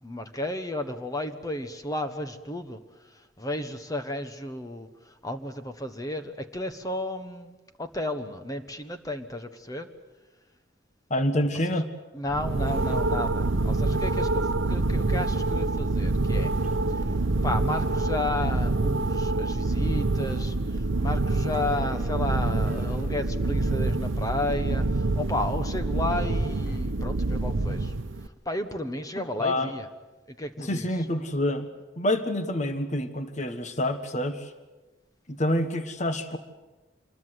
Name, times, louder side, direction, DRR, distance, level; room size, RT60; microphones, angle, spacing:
voice 1, 0.0-9.9 12.1-16.5 16.9-29.9 30.3-30.9, left 1 dB, 20° left, 8 dB, 1.2 m, -33 dB
voice 2, 11.1-11.9 29.2-29.7 30.6-31.7 32.0-34.5 35.3-36.4, left 1 dB, 40° left, 9 dB, 1.4 m, -27 dB
sound 1, 12.3-28.3, right 2 dB, 85° right, 0.9 m, -26 dB
sound 2, 12.4-16.2 16.6-21.1 21.5-26.8, right 1 dB, 10° right, 3.6 m, -43 dB
26.5 x 21.5 x 8.0 m, 1.2 s
head